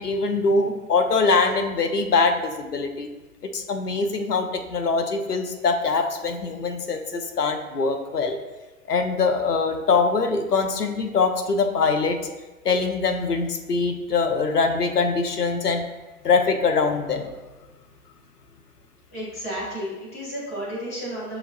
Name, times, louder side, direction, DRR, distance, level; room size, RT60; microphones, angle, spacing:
voice 1, 0.0-3.1 3.4-8.4 8.9-12.2 12.6-15.8 16.2-17.3, left 4 dB, 85° left, 6 dB, 0.7 m, -23 dB
voice 2, 19.1-21.4, equal, 10° left, -7 dB, 0.3 m, -32 dB
6.6 x 3.0 x 2.6 m, 1.2 s
figure-of-eight pair, 110°, 46 cm